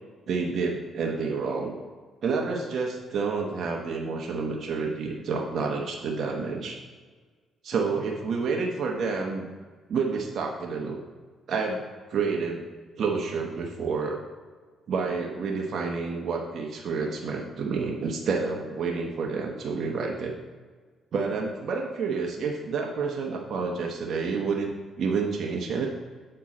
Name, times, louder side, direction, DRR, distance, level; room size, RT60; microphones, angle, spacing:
voice 1, 0.3-1.8 2.2-6.8 7.6-9.5 9.9-11.0 11.5-11.8 12.1-12.7 13.0-14.2 14.9-20.3 21.1-24.7 25.0-25.9, right 4 dB, 60° right, 0 dB, 0.9 m, -29 dB
7.4 x 4.5 x 4.2 m, 1.5 s
cardioid pair, 90°, 0 cm